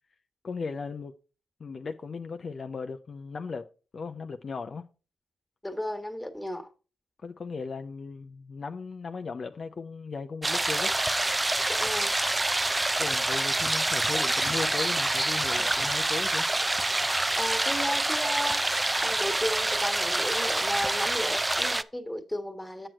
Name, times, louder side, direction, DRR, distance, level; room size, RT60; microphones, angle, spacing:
voice 1, 0.4-1.1 1.6-3.7 3.9-4.9 7.2-10.9 13.0-16.5, left 4 dB, 55° left, 0.5 m, -37 dB
voice 2, 5.6-6.7 11.7-12.1 17.4-18.6 19.0-22.9, left 1 dB, 10° left, 1.6 m, -34 dB
sound 1, 10.4-21.8, right 2 dB, 20° right, 0.4 m, -27 dB
7.7 x 6.2 x 4.5 m
cardioid pair, 65°, 0 cm